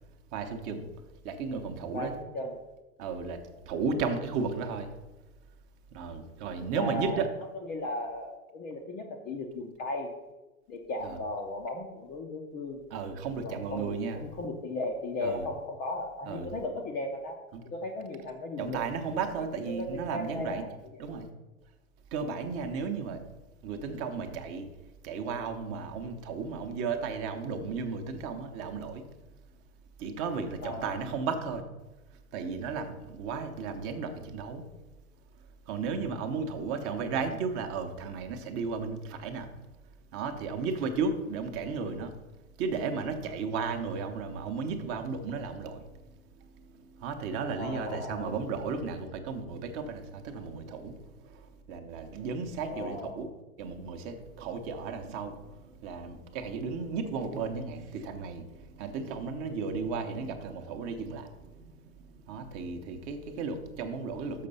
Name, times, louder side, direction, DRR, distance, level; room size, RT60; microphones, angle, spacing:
voice 1, 0.3-0.8 1.2-2.1 3.0-3.4 3.7-4.9 5.9-7.3 11.0-11.2 12.9-14.2 15.2-15.5 16.3-16.5 17.5-17.6 18.6-20.6 21.0-21.3 22.1-23.2 23.6-24.7 25.0-29.0 30.0-31.6 32.3-34.6 35.7-39.5 40.1-42.1 42.6-45.8 46.7-53.3 53.6-64.5, right 5 dB, 30° right, 6 dB, 0.9 m, -34 dB
voice 2, 1.9-2.6 6.7-7.2 7.7-10.1 10.7-12.8 13.4-17.4 17.6-18.8 19.7-20.7 21.0-21.1 30.6-31.0 47.6-48.7 52.7-53.2, left 2 dB, 20° left, 3 dB, 0.5 m, -36 dB
6.6 x 5.9 x 5.4 m, 1.1 s
hypercardioid pair, 130°, 44 cm